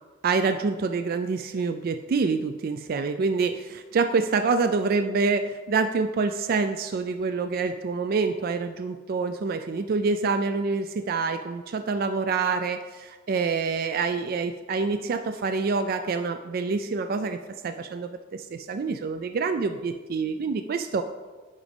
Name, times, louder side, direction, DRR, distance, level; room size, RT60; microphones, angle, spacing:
voice 1, 0.2-17.4 17.6-21.0, right 4 dB, 50° right, 9 dB, 0.3 m, -26 dB
9.7 x 4.1 x 5.2 m, 1.3 s
head